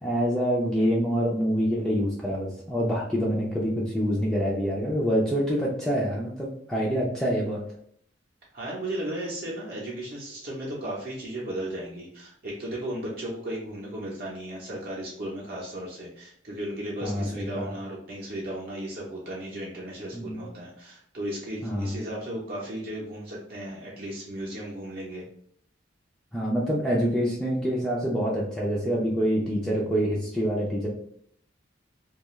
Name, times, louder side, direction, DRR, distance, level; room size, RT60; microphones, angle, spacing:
voice 1, 0.0-7.6 17.0-17.7 20.1-20.5 21.6-22.0 26.3-30.9, equal, ahead, -5 dB, 0.4 m, -26 dB
voice 2, 8.5-25.2, right 1 dB, 50° right, -4 dB, 0.7 m, -35 dB
2.3 x 2.3 x 2.9 m, 0.64 s
head